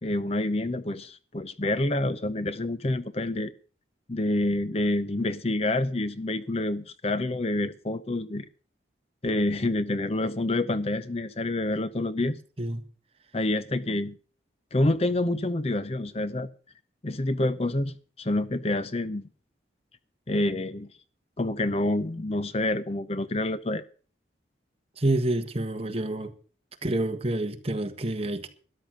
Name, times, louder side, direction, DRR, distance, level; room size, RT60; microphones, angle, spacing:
voice 1, 0.0-3.5 4.1-8.5 9.2-12.4 13.3-14.2 14.7-16.5 17.0-19.3 20.3-20.9 21.4-23.8, left 2 dB, 35° left, 0.7 m, -27 dB
voice 2, 25.0-26.3 26.8-28.5, right 1 dB, 30° right, 1.5 m, -28 dB
13.5 x 10.5 x 6.5 m
head